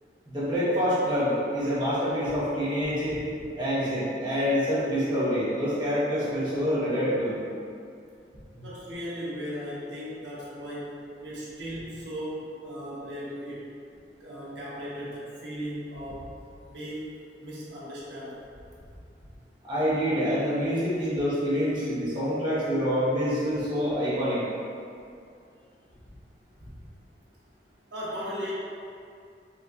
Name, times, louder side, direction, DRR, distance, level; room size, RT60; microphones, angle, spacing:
voice 1, 0.3-3.2 3.5-7.4 8.6-8.7 19.6-24.4, equal, 25° right, -10 dB, 1.0 m, -26 dB
voice 2, 8.3-13.7 14.2-16.4 16.6-17.1 17.4-18.4 26.6-26.7 27.9-28.5, equal, 80° right, -7 dB, 0.9 m, -37 dB
4.0 x 2.6 x 2.4 m, 2.4 s
head